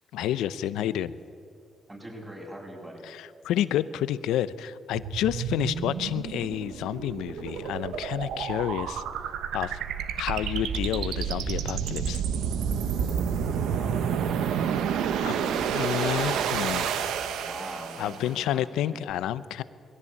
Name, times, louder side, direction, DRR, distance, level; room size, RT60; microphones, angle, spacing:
voice 1, 0.1-1.2 3.0-9.0 9.5-9.8 10.2-12.2 15.2-15.3 15.7-16.9 18.0-19.6, left 11 dB, 90° left, 16 dB, 0.6 m, -29 dB
voice 2, 1.9-3.0 13.7-15.9 16.2-18.6 18.9-19.1, right 1 dB, 20° right, -1 dB, 6.8 m, -42 dB
sound 1, 4.9-18.3, right 7 dB, 85° right, 1.0 m, -30 dB
21.0 x 16.0 x 8.5 m, 2.3 s
cardioid pair, 75°, 0 cm